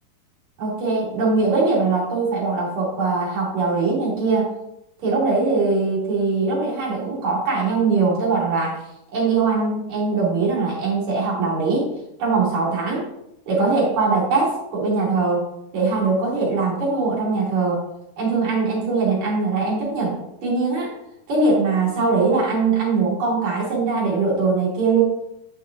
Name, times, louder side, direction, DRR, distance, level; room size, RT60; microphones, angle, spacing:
voice 1, 0.6-4.5 5.0-8.8 9.1-11.9 12.2-13.1 13.5-15.4 15.7-17.8 18.2-20.9 21.3-25.0, right 4 dB, 50° right, -6 dB, 4.1 m, -21 dB
10.5 x 6.5 x 2.7 m, 0.82 s
omnidirectional pair, 4.4 m